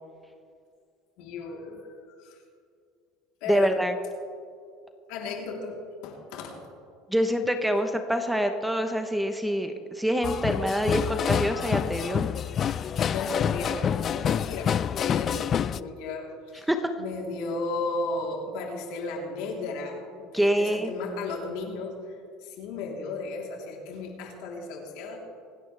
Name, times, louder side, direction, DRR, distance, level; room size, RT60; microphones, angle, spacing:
voice 1, 1.2-2.4 3.4-3.8 5.1-5.8 6.0-6.6 13.1-16.3 16.5-16.7 17.0-25.2, left 3 dB, 70° left, -1 dB, 3.5 m, -35 dB
voice 2, 3.5-3.9 7.1-12.3 16.7-16.9 20.3-20.9, equal, 5° right, 7 dB, 1.0 m, -26 dB
sound 1, 10.2-15.8, left 8 dB, 35° left, 0.3 m, -27 dB
26.0 x 10.5 x 3.4 m, 2.3 s
supercardioid pair, 115°, 0 cm